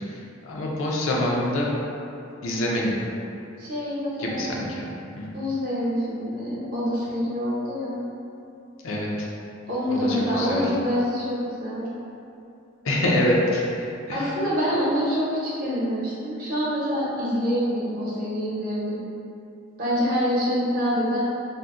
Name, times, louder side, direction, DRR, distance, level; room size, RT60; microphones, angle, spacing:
voice 1, 0.4-1.7 2.4-3.0 4.2-4.8 5.2-5.3 8.8-9.3 9.9-10.6 12.8-14.3, left 1 dB, 80° left, -3 dB, 0.5 m, -25 dB
voice 2, 3.6-4.6 5.3-8.0 9.7-11.9 14.1-19.1 19.8-21.2, equal, 45° right, -8 dB, 0.8 m, -26 dB
2.6 x 2.1 x 3.5 m, 2.7 s
head